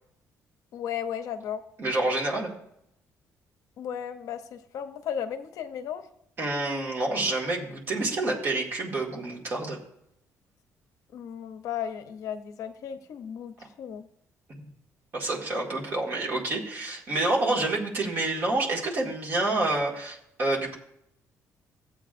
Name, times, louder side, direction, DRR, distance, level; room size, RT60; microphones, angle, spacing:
voice 1, 0.7-1.6 3.8-6.1 11.1-14.1, left 9 dB, 65° left, 8 dB, 0.6 m, -35 dB
voice 2, 1.8-2.5 6.4-9.8 15.1-20.7, right 2 dB, 35° right, -2 dB, 1.9 m, -28 dB
15.0 x 8.2 x 2.5 m, 0.76 s
cardioid pair, 180°, 6 cm